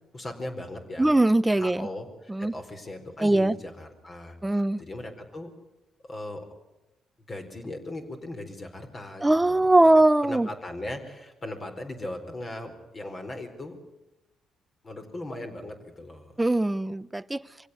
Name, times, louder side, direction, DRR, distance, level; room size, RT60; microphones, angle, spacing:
voice 1, 0.1-1.1 1.5-5.5 6.0-6.5 7.3-9.7 10.2-13.8 14.8-16.5, left 1 dB, 35° left, 4 dB, 4.4 m, -38 dB
voice 2, 1.0-1.9 2.3-2.5 3.2-3.5 4.4-4.8 9.2-10.5 16.4-17.4, right 2 dB, 10° right, 16 dB, 0.8 m, -21 dB
24.5 x 16.5 x 9.5 m, 0.99 s
cardioid pair, 90°, 0 cm